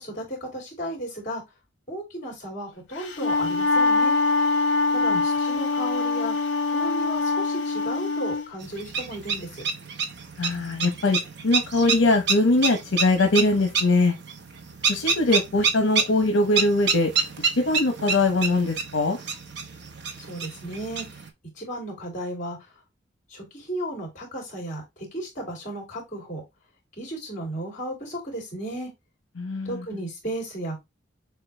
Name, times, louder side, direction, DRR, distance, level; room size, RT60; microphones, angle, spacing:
voice 1, 0.0-1.4 1.9-4.2 4.9-6.3 6.7-9.6 20.3-21.1 21.6-22.6 23.3-24.8 25.1-26.4 27.0-28.9 29.6-30.8, right 1 dB, 40° left, 2.6 m, -34 dB
Wind instrument woodwind instrument, 3.0-8.4, left 3 dB, 70° left, 1.3 m, -23 dB
sound 1, 8.6-21.3, right 5 dB, 65° right, 0.8 m, -29 dB
voice 2, 10.4-11.2 11.4-14.1 14.9-17.1 17.6-19.2 29.4-29.8, left 2 dB, 85° left, 0.9 m, -22 dB
6.6 x 2.3 x 3.3 m
head